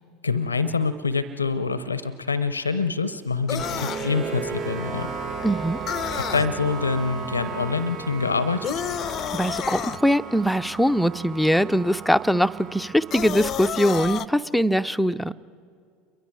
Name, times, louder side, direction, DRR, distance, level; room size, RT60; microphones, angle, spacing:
voice 1, 0.2-5.1 6.1-8.8, left 4 dB, 90° left, 14 dB, 0.7 m, -26 dB
sound 1, 3.5-4.1 5.9-6.5 8.6-10.0 13.1-14.3, left 10 dB, 40° left, 0.5 m, -30 dB
sound 2, 3.6-13.6, right 4 dB, 50° right, 5.5 m, -35 dB
voice 2, 5.4-5.8 9.3-15.3, equal, ahead, 11 dB, 0.6 m, -22 dB
29.0 x 23.0 x 4.8 m, 2.2 s
figure-of-eight pair, 75°, 0 cm